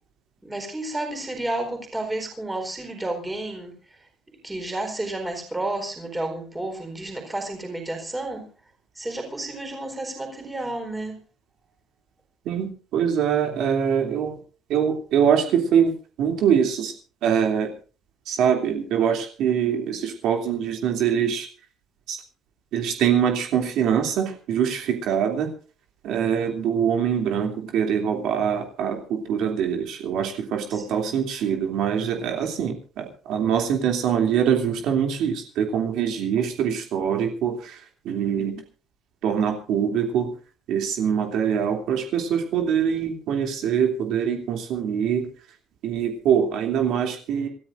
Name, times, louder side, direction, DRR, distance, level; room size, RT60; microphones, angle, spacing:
voice 1, 0.4-3.8 4.3-8.4 9.0-11.2 30.7-31.2, right 2 dB, 10° right, 4.3 m, -31 dB
voice 2, 12.4-14.3 14.7-15.9 16.2-16.9 17.2-17.7 18.3-21.5 22.1-22.2 22.7-25.5 26.0-38.5 39.2-40.3 40.7-45.3 45.8-47.5, right 8 dB, 60° right, 2.9 m, -23 dB
27.0 x 14.0 x 2.6 m
cardioid pair, 170°, 0 cm